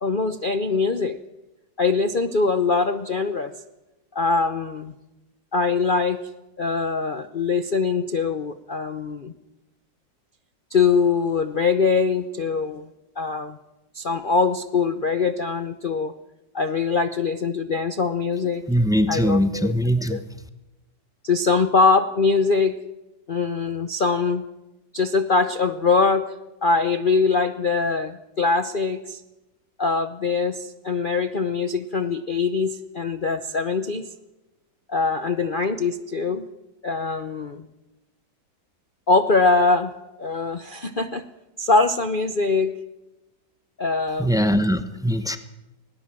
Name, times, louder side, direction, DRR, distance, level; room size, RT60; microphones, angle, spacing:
voice 1, 0.0-1.2 1.8-3.5 4.1-4.9 5.5-6.2 6.6-9.3 10.7-12.8 13.2-13.6 13.9-16.1 16.5-18.6 19.1-19.7 20.1-20.2 21.2-22.7 23.3-24.4 24.9-26.3 26.6-29.2 29.8-34.0 34.9-36.4 36.8-37.7 39.1-39.9 40.2-41.2 41.6-42.7 43.8-44.4, left 4 dB, 55° left, 10 dB, 0.6 m, -22 dB
voice 2, 18.7-20.2 44.2-45.4, equal, 5° right, 10 dB, 0.4 m, -21 dB
20.0 x 19.0 x 7.5 m, 1.0 s
omnidirectional pair, 2.0 m